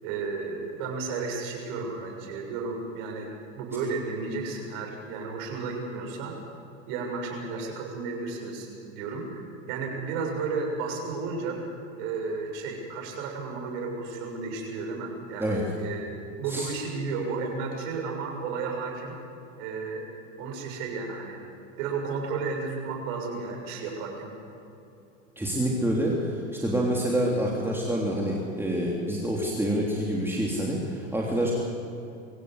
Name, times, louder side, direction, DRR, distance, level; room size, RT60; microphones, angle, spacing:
voice 1, 0.0-6.3 6.9-9.4 9.7-11.6 12.0-19.1 19.6-20.0 20.4-21.4 21.8-24.3, right 4 dB, 60° right, 1 dB, 7.0 m, -33 dB
voice 2, 25.3-31.5, right 1 dB, 5° right, -3 dB, 3.4 m, -27 dB
24.0 x 16.0 x 8.0 m, 2.8 s
hypercardioid pair, 95°, 39 cm